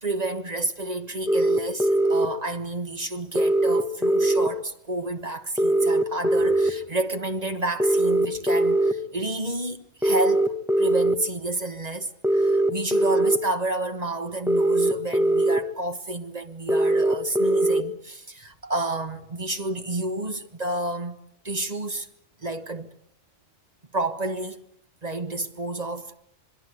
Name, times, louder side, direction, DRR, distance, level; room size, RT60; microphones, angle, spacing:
voice 1, 0.0-21.2 21.4-22.1 22.4-22.9 23.9-24.6 25.0-26.1, right 2 dB, 30° right, 1.4 m, -30 dB
sound 1, 1.3-2.3 3.4-4.5 5.6-6.7 7.8-8.9 10.0-11.2 12.2-13.4 14.5-15.6 16.7-17.8, right 1 dB, ahead, 1.1 m, -21 dB
26.0 x 22.0 x 7.9 m
omnidirectional pair, 1.3 m